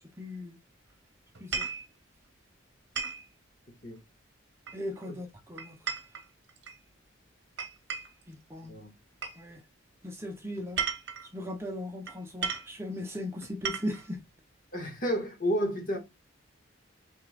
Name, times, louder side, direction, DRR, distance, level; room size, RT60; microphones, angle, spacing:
voice 1, 0.2-0.6 1.4-1.7 4.7-5.8 8.3-8.7 9.4-9.6 10.0-10.8 11.3-14.2, left 1 dB, 10° right, 0.7 m, -38 dB
sound 1, 1.3-1.9 3.0-3.3 4.7-5.1 5.6-6.8 7.6-8.2 9.2-9.4 10.6-11.3 12.1-12.2 12.4-12.7 13.4-14.1, right 6 dB, 55° right, 0.9 m, -35 dB
voice 2, 14.7-16.0, equal, 40° left, 1.5 m, -31 dB
5.4 x 3.5 x 2.3 m
head